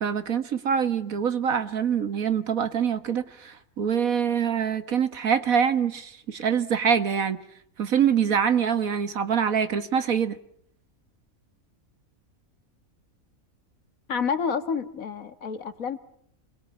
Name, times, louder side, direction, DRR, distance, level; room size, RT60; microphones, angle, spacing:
voice 1, 0.0-7.4 7.8-10.4, right 7 dB, 80° right, 11 dB, 1.9 m, -24 dB
voice 2, 14.1-16.0, left 6 dB, 75° left, 11 dB, 2.0 m, -29 dB
28.5 x 21.5 x 8.6 m, 0.68 s
omnidirectional pair, 1.4 m